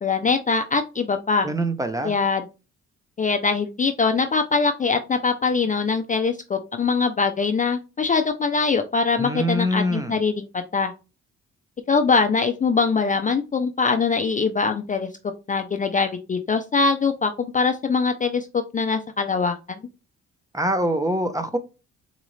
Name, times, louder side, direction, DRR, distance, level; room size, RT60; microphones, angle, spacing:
voice 1, 0.0-1.5 2.0-2.4 3.2-10.9 11.9-15.1 15.5-18.5 18.7-19.8, left 4 dB, 25° left, 0.4 m, -22 dB
voice 2, 1.4-2.1 9.2-10.2 20.5-21.6, equal, 10° right, 0.7 m, -24 dB
4.0 x 2.4 x 3.0 m
cardioid pair, 90°, 30 cm